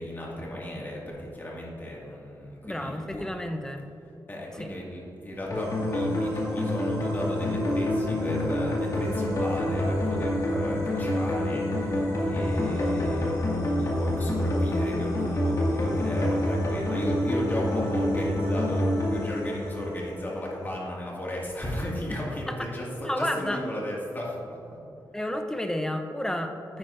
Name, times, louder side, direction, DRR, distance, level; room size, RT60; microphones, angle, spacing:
voice 1, 0.0-3.3 4.3-24.6, equal, 25° left, -4 dB, 2.0 m, -35 dB
voice 2, 2.6-3.9 4.6-4.7 22.1-22.2 22.5-22.7 23.0-23.6 25.1-26.8, left 1 dB, 5° left, 5 dB, 0.6 m, -31 dB
sound 1, 5.5-20.6, left 1 dB, 45° left, 2.0 m, -27 dB
10.0 x 9.0 x 2.6 m, 2.8 s
wide cardioid pair, 115°, 8 cm